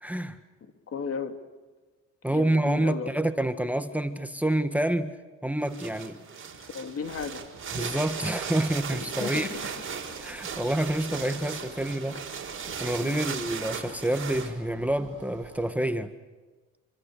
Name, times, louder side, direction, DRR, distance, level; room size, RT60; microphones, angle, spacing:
voice 1, 0.0-0.4 2.2-5.2 5.4-6.2 7.7-9.5 10.2-12.2 12.8-16.1, right 1 dB, 5° right, 1.6 m, -28 dB
voice 2, 0.9-1.4 2.3-3.1 6.6-7.4 9.2-9.5 12.1-12.2 13.0-13.2, left 5 dB, 50° left, 3.1 m, -34 dB
sound 1, 5.6-14.5, right 6 dB, 45° right, 5.9 m, -37 dB
sound 2, 7.0-15.8, right 10 dB, 90° right, 2.7 m, -50 dB
28.5 x 25.5 x 6.6 m
cardioid pair, 90°, 30 cm